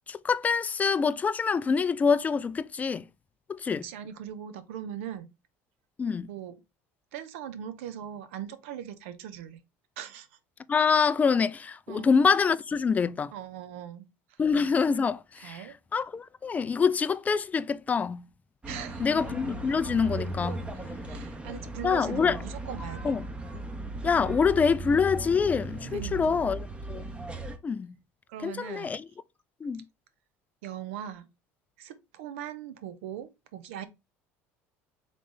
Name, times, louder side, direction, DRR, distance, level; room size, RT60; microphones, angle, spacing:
voice 1, 0.1-3.0 3.5-3.8 6.0-6.3 10.7-13.3 14.4-15.6 15.9-18.2 19.0-20.6 21.8-22.4 23.0-23.2 24.0-27.0 27.6-27.9 28.4-29.0 29.6-29.8, left 5 dB, 25° left, 0.3 m, -25 dB
voice 2, 3.8-5.3 6.3-6.6 7.1-9.6 10.0-10.3 11.9-12.1 13.3-14.4 15.4-15.8 18.7-19.1 20.5-20.6 21.1-23.1 25.8-26.4 28.3-28.9 30.6-31.3 31.8-33.9, right 10 dB, 90° right, 0.6 m, -40 dB
sound 1, 18.6-27.6, right 2 dB, 15° right, 0.7 m, -37 dB
3.7 x 3.2 x 3.7 m
supercardioid pair, 100°, 7 cm